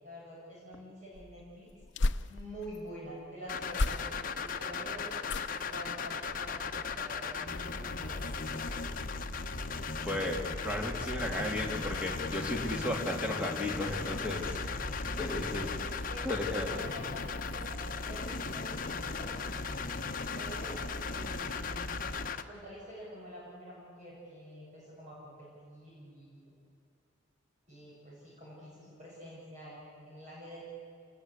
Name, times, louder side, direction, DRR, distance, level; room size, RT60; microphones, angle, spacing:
voice 1, 0.0-1.7 2.3-5.2 5.7-8.2 11.1-11.2 15.6-19.4 20.3-22.0 22.5-26.5 27.7-30.6, equal, 35° right, -6 dB, 7.8 m, -47 dB
sound 1, 1.1-2.8 3.7-4.5 5.2-5.8 6.2-6.6 6.9-7.0, left 2 dB, 60° left, 0.7 m, -34 dB
sound 2, 3.5-22.4, left 4 dB, 45° left, 1.1 m, -37 dB
sound 3, 6.2-6.9 7.9-10.0 10.9-13.0 13.9-15.8, left 1 dB, 80° right, 3.9 m, -45 dB
voice 2, 10.0-10.4 10.6-14.6 15.2-15.7 16.2-16.8, left 1 dB, 5° right, 0 dB, 3.0 m, -34 dB
28.5 x 20.5 x 8.3 m, 2.4 s
head